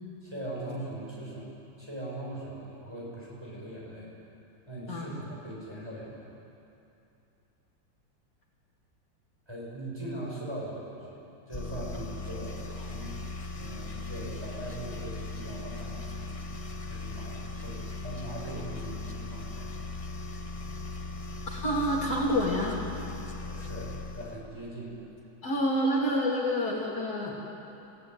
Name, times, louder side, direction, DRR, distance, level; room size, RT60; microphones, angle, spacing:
voice 1, 0.2-1.5 1.8-4.1 4.7-6.3 9.5-11.2 11.5-13.2 13.6-16.5 16.9-19.7 23.4-25.1, right 1 dB, 15° right, -5 dB, 7.1 m, -40 dB
sound 1, 11.5-24.5, left 3 dB, 20° left, 1.0 m, -38 dB
voice 2, 21.5-22.8 25.4-27.3, equal, 55° left, -3 dB, 3.2 m, -28 dB
28.5 x 16.5 x 9.6 m, 2.8 s
omnidirectional pair, 2.0 m